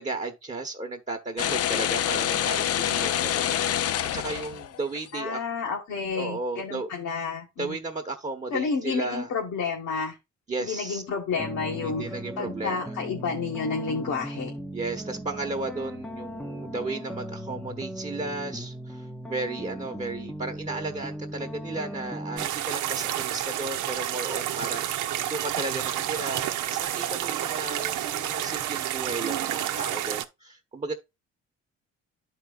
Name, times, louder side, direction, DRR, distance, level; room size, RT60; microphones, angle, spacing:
voice 1, 0.0-5.4 6.1-6.9 7.6-9.3 10.5-11.0 11.8-12.9 14.7-30.9, right 3 dB, 25° right, 1.1 m, -34 dB
sound 1, 1.4-5.0, left 10 dB, 55° left, 0.5 m, -26 dB
voice 2, 5.1-7.8 8.5-10.2 10.6-12.1 12.4-14.5, left 5 dB, 70° left, 1.7 m, -30 dB
sound 2, 11.3-22.5, equal, ahead, 0.8 m, -38 dB
sound 3, 22.4-30.2, right 12 dB, 90° right, 0.8 m, -30 dB
11.5 x 4.7 x 2.4 m
cardioid pair, 90°, 30 cm